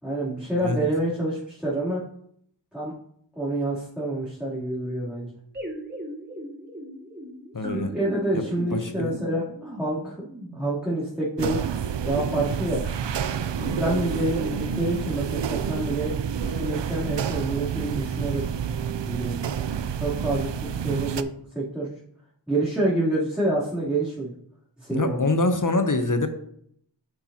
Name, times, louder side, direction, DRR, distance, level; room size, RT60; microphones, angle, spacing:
voice 1, 0.0-2.0 2.7-2.9 3.4-5.3 7.7-10.2 10.5-11.6 12.0-12.8 13.5-16.1 16.4-18.4 19.0-19.4 20.0-21.3 21.5-21.9 22.5-24.3 24.8-25.3, right 1 dB, ahead, -9 dB, 3.2 m, -27 dB
sound 1, 5.5-11.0, equal, 20° right, 2.0 m, -38 dB
voice 2, 7.5-7.9 8.3-9.2 24.9-26.3, left 2 dB, 45° left, 7 dB, 0.9 m, -25 dB
sound 2, 11.4-21.2, right 8 dB, 70° right, 0.6 m, -29 dB
9.6 x 7.2 x 2.9 m, 0.68 s
wide cardioid pair, 40°, 45 cm